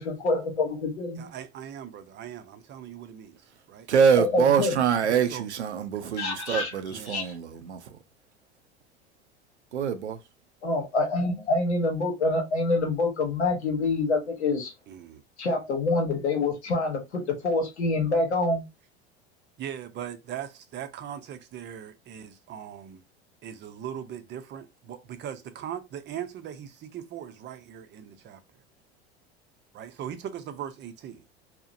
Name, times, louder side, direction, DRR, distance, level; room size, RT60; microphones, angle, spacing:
voice 1, 0.0-1.3 4.2-4.7 6.2-6.7 7.1-7.3 10.6-14.7 15.4-18.6, left 3 dB, 85° left, 0.9 m, -26 dB
voice 2, 1.2-3.4 3.7-3.9 5.1-5.5 6.9-7.4 14.9-15.2 19.6-23.0 23.4-28.4 29.7-31.2, right 9 dB, 35° right, 0.5 m, -39 dB
voice 3, 3.9-8.0 9.7-10.2, right 7 dB, 90° right, 0.5 m, -25 dB
2.8 x 2.1 x 2.5 m
hypercardioid pair, 80°, 33 cm